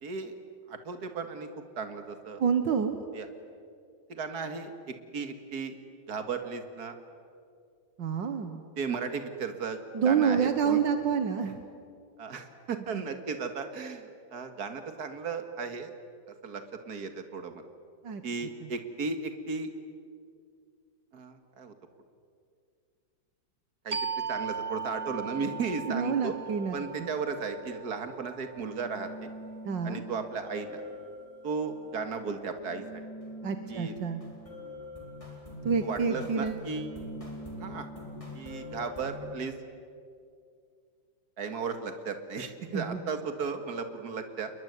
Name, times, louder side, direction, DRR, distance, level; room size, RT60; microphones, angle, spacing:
voice 1, 0.0-0.4 0.7-1.5 1.8-2.4 3.1-3.3 4.1-5.8 6.1-6.9 8.8-9.8 10.0-10.8 12.2-15.9 16.4-17.6 18.2-19.7 21.1-21.7 23.8-24.0 24.3-26.3 26.7-29.3 29.8-30.8 31.4-33.0 33.7-33.9 35.8-36.9 37.6-37.9 38.3-39.5 41.4-44.5, right 5 dB, 55° right, 8 dB, 2.4 m, -35 dB
voice 2, 2.4-3.0 8.0-8.6 9.9-11.6 18.0-18.2 25.9-27.1 29.7-30.0 33.4-34.2 35.6-36.6 42.7-43.0, right 6 dB, 75° right, 8 dB, 2.0 m, -28 dB
sound 1, 23.9-29.2, right 5 dB, 35° right, 0.6 m, -38 dB
sound 2, 24.6-39.2, left 1 dB, 15° left, 4.6 m, -45 dB
28.5 x 21.5 x 9.6 m, 2.3 s
omnidirectional pair, 2.0 m